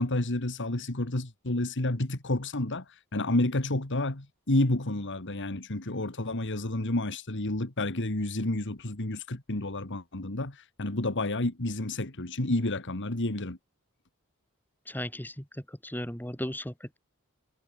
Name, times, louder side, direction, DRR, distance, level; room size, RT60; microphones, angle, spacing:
voice 1, 0.0-13.6, left 2 dB, 55° left, 2.1 m, -30 dB
voice 2, 14.9-17.0, left 1 dB, 10° left, 4.6 m, -36 dB
head